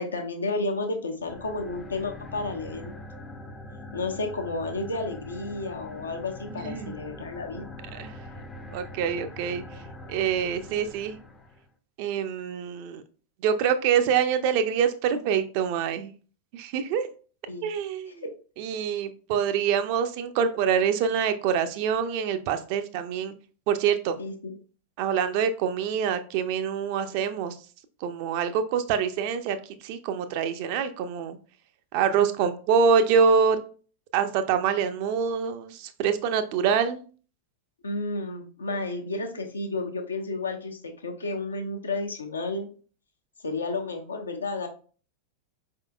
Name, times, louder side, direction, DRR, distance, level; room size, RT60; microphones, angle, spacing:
voice 1, 0.0-2.9 3.9-7.7 17.5-17.6 18.2-18.3 24.2-24.6 37.8-42.7 43.4-44.7, left 3 dB, 75° left, 4 dB, 0.8 m, -32 dB
sound 1, 1.2-11.7, left 2 dB, 15° left, 0.5 m, -43 dB
voice 2, 6.5-7.0 7.6-7.7 7.9-8.2 8.7-9.8 10.1-11.2 12.0-13.0 13.4-16.1 16.5-17.1 17.6-18.2 18.6-23.3 23.7-24.2 25.0-27.6 28.0-31.4 31.9-33.6 34.1-37.0, right 7 dB, 45° right, 9 dB, 0.5 m, -25 dB
4.8 x 3.6 x 2.3 m, 0.39 s
figure-of-eight pair, 90°, 0 cm